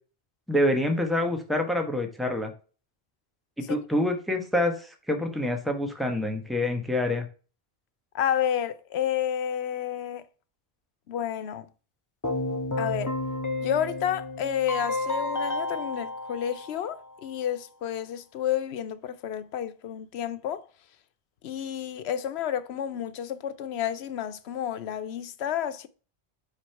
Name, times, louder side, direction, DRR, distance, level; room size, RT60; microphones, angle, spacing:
voice 1, 0.5-2.5 3.6-7.3, left 1 dB, ahead, 1.1 m, -26 dB
voice 2, 8.1-10.2 11.1-11.7 12.8-13.1 13.6-20.6 21.4-25.9, left 10 dB, 90° left, 0.9 m, -30 dB
Keyboard (musical), 12.2-17.2, left 2 dB, 20° left, 0.7 m, -31 dB
5.2 x 5.0 x 4.5 m
omnidirectional pair, 1.1 m